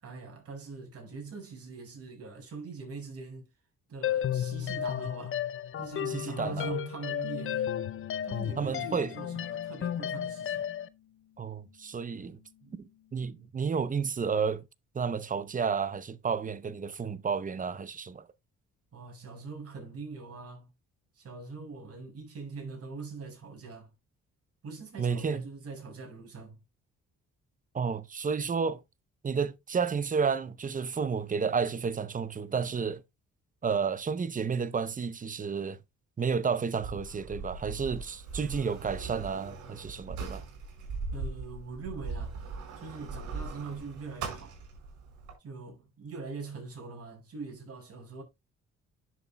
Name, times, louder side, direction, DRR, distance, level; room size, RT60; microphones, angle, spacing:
voice 1, 0.0-3.5 3.9-5.4 5.8-7.8 8.2-10.6 12.6-12.8 18.9-20.7 21.1-23.9 24.6-26.6 41.1-42.4 42.8-44.6 45.4-48.2, right 4 dB, 50° right, 5.3 m, -42 dB
sound 1, 4.0-10.9, left 10 dB, 45° left, 0.5 m, -33 dB
voice 2, 6.1-6.7 8.6-9.1 11.4-12.4 13.1-14.6 14.9-18.3 25.0-25.4 27.7-28.8 29.2-33.0 33.6-35.8 36.2-40.4, right 6 dB, 25° right, 0.7 m, -31 dB
Bass guitar, 7.2-13.5, left 12 dB, 80° left, 0.9 m, -49 dB
Sliding door, 36.8-45.3, right 4 dB, 80° right, 4.4 m, -40 dB
10.5 x 7.0 x 2.2 m
cardioid pair, 90°, 30 cm